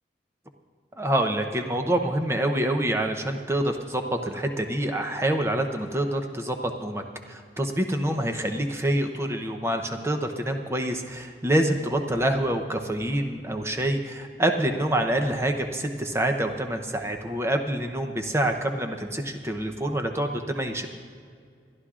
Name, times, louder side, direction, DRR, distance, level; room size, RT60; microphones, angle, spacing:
voice 1, 1.0-20.9, right 1 dB, 15° right, 5 dB, 0.7 m, -26 dB
26.0 x 11.5 x 2.5 m, 2.2 s
head